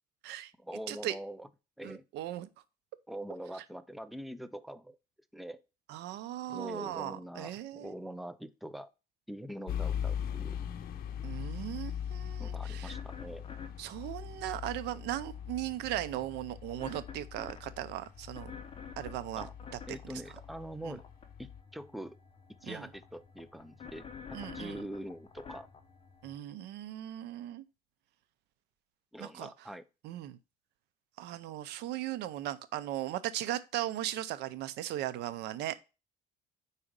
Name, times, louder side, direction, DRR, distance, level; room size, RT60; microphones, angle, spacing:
voice 1, 0.6-1.5 1.8-2.1 3.1-5.0 5.3-5.6 6.5-8.9 9.3-10.6 12.4-13.4 19.4-19.5 19.9-21.1 21.4-22.2 22.6-24.1 24.4-25.7 29.1-29.8, equal, ahead, 0.4 m, -43 dB
voice 2, 1.8-2.5 5.9-7.9 11.2-13.0 13.8-18.5 19.0-19.5 20.8-21.0 22.6-22.9 24.3-24.8 26.2-27.6 29.2-29.5 30.0-30.4 31.2-35.8, right 13 dB, 85° right, 0.6 m, -38 dB
sound 1, 9.7-21.6, left 9 dB, 60° left, 0.7 m, -41 dB
sound 2, 10.5-26.4, left 6 dB, 35° left, 0.8 m, -52 dB
4.9 x 4.2 x 5.1 m
cardioid pair, 110°, 17 cm